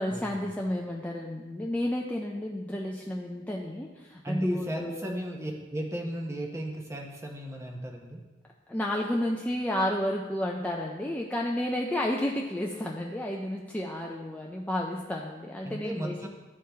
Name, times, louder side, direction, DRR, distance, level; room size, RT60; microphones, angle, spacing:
voice 1, 0.0-5.1 8.7-16.3, left 1 dB, 5° left, -1 dB, 0.4 m, -31 dB
voice 2, 4.2-8.2 15.6-16.3, equal, 15° right, 1 dB, 0.9 m, -35 dB
12.5 x 4.7 x 3.5 m, 1.2 s
head